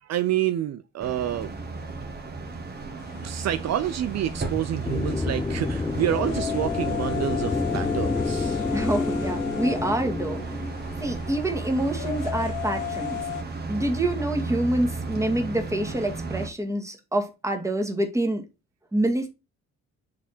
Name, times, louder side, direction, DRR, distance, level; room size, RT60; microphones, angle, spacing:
voice 1, 0.0-1.5 3.2-8.7, right 11 dB, 60° right, 0.6 m, -28 dB
sound 1, 1.0-16.5, right 3 dB, 35° right, 1.6 m, -34 dB
sound 2, 3.0-13.4, left 11 dB, 90° left, 0.7 m, -36 dB
sound 3, 4.8-11.5, left 4 dB, 10° left, 0.3 m, -29 dB
voice 2, 8.7-10.4 11.0-13.2 13.7-18.4 18.9-19.3, right 1 dB, 10° right, 1.8 m, -26 dB
7.4 x 3.5 x 4.3 m
cardioid pair, 90°, 30 cm